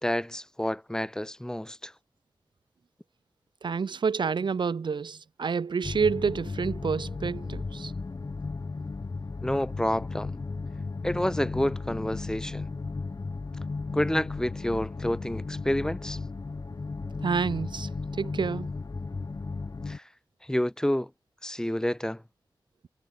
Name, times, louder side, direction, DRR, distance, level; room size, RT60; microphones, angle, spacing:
voice 1, 0.0-1.9 9.4-10.3 11.0-12.7 13.9-16.2 19.9-20.0 20.5-21.1 21.4-22.2, left 1 dB, 10° left, 3.6 m, -29 dB
voice 2, 3.6-7.9 17.2-18.7, right 5 dB, 80° right, 1.4 m, -29 dB
sound 1, 5.8-20.0, left 3 dB, 50° left, 6.4 m, -35 dB
wide cardioid pair, 110°, 8 cm